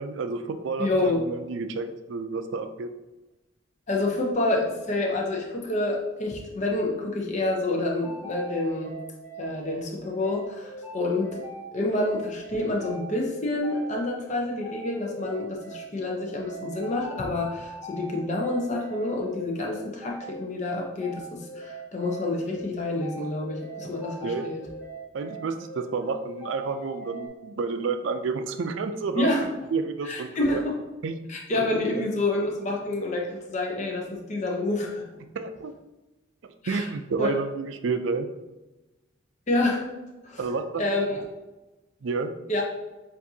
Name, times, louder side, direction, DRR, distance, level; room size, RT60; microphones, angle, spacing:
voice 1, 0.0-2.9 24.2-24.5 25.1-29.3 29.7-30.6 31.0-31.1 31.6-32.0 35.3-35.7 36.7-38.3 40.4-40.8 42.0-42.3, right 4 dB, 70° right, 9 dB, 0.4 m, -30 dB
voice 2, 0.8-1.2 3.9-9.0 9.4-11.4 11.7-24.6 29.2-29.5 30.0-30.8 31.3-35.0 36.6-36.9 37.2-37.3 39.5-39.9 40.2-40.4 40.8-41.2 42.5-42.6, left 2 dB, 35° left, -1 dB, 0.6 m, -28 dB
sound 1, 7.9-27.3, right 2 dB, 5° right, 0.8 m, -41 dB
7.1 x 2.6 x 2.7 m, 1.1 s
head